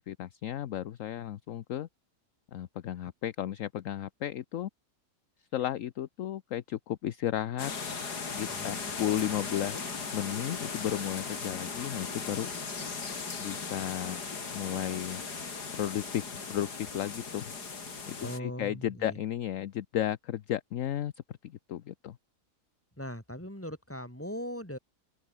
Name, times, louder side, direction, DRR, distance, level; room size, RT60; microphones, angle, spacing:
voice 1, 0.1-1.9 2.5-4.7 5.5-7.7 8.2-12.5 13.4-14.2 14.5-15.2 15.8-17.5 18.1-22.2, left 11 dB, 60° left, 1.0 m, -34 dB
sound 1, 7.6-18.4, left 5 dB, 80° left, 3.3 m, -38 dB
voice 2, 8.5-8.8 18.2-19.2 23.0-24.8, equal, 10° left, 6.2 m, -39 dB
omnidirectional pair, 1.7 m